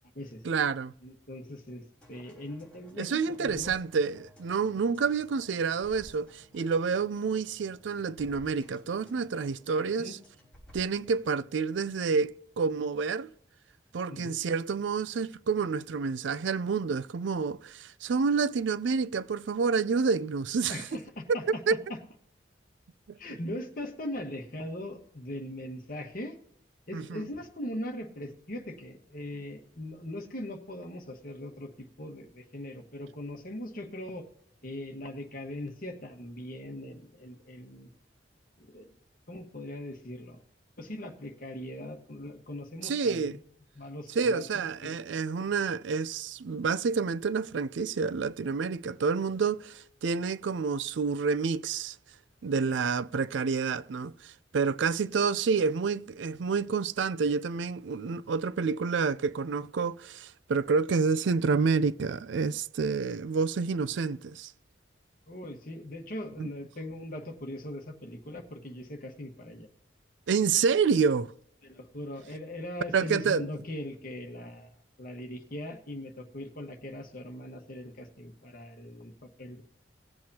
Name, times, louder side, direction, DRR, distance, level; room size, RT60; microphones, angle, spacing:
voice 1, 0.4-0.9 3.0-10.2 10.7-13.3 13.9-20.8 21.7-21.8 23.1-23.2 26.9-27.2 42.8-43.3 44.2-52.0 52.4-64.5 66.4-66.5 70.3-71.3 72.9-73.5, right 5 dB, 75° right, 0.4 m, -28 dB
voice 2, 1.0-1.8 2.1-3.7 9.7-10.2 14.1-14.4 20.7-22.0 23.2-26.4 26.9-34.3 34.6-37.9 38.6-38.9 39.3-40.4 40.8-43.4 43.7-45.0 52.6-52.7 65.3-69.7 71.6-79.6, left 1 dB, 45° left, 1.4 m, -40 dB
sound 1, 2.0-11.4, equal, 5° left, 3.3 m, -56 dB
19.5 x 7.7 x 2.8 m
head